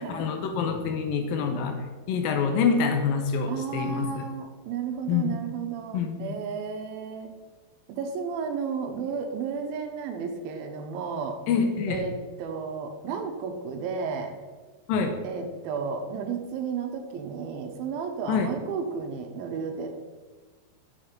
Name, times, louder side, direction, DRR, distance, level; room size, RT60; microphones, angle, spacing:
voice 1, 0.0-4.3 5.1-5.3 5.9-6.4 11.5-12.0 14.9-15.2 18.3-18.5, left 5 dB, 80° left, 5 dB, 2.4 m, -26 dB
voice 2, 3.5-7.3 7.9-11.4 11.9-12.1 12.4-14.3 15.2-19.9, right 6 dB, 80° right, 5 dB, 2.6 m, -33 dB
7.2 x 6.6 x 5.2 m, 1.3 s
omnidirectional pair, 4.3 m